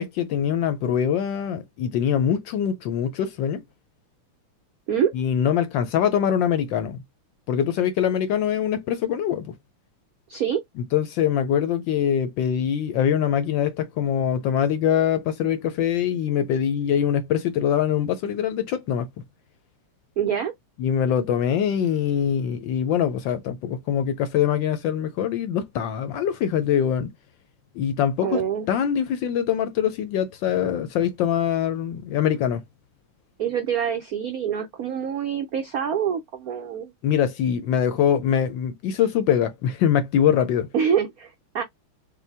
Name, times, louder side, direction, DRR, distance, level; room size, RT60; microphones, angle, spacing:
voice 1, 0.0-3.6 5.1-7.0 7.5-9.5 10.8-19.1 20.8-27.1 27.7-32.6 37.0-40.7, left 9 dB, 75° left, 1.1 m, -23 dB
voice 2, 10.3-10.6 20.2-20.5 28.2-28.7 33.4-36.9 40.7-41.6, right 8 dB, 85° right, 0.8 m, -25 dB
5.5 x 2.2 x 3.3 m
omnidirectional pair, 2.4 m